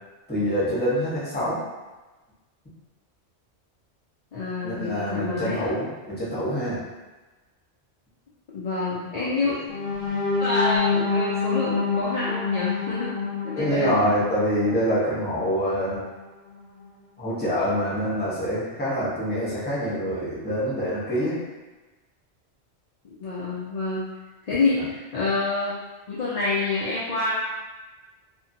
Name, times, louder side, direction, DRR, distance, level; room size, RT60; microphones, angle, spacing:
voice 1, 0.3-1.6 4.6-6.8 9.1-9.5 13.6-16.0 17.2-21.4, equal, 10° left, -9 dB, 0.8 m, -25 dB
voice 2, 4.3-5.7 8.5-9.5 10.4-13.1 13.4-13.9 23.0-24.1 24.5-25.8 26.1-27.3, left 3 dB, 60° left, -8 dB, 0.4 m, -27 dB
sound 1, 9.7-15.6 16.1-16.3 16.6-16.9, left 4 dB, 55° right, 1.2 m, -27 dB
2.7 x 2.6 x 2.6 m, 1.2 s
omnidirectional pair, 1.2 m